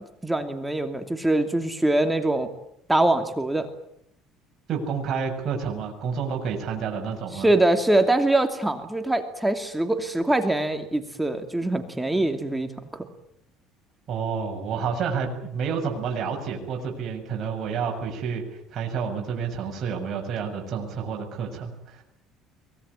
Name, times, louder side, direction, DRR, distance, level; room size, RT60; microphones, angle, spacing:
voice 1, 0.0-2.5 2.9-3.7 7.3-12.7, right 2 dB, 10° right, 7 dB, 2.7 m, -23 dB
voice 2, 4.7-7.5 14.1-18.5 18.7-22.0, right 6 dB, 45° right, 0 dB, 7.1 m, -29 dB
23.5 x 20.5 x 9.9 m, 0.74 s
cardioid pair, 105°, 0 cm